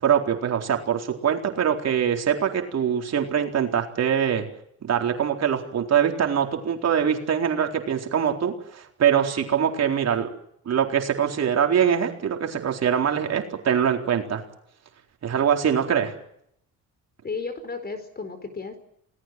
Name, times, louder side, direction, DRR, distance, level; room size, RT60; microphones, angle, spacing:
voice 1, 0.0-4.5 4.8-10.3 10.7-14.4 15.2-16.1, right 8 dB, 50° right, 3 dB, 4.2 m, -23 dB
voice 2, 17.2-18.8, left 4 dB, 30° left, 11 dB, 4.6 m, -33 dB
27.5 x 19.0 x 7.8 m, 0.72 s
cardioid pair, 105°, 32 cm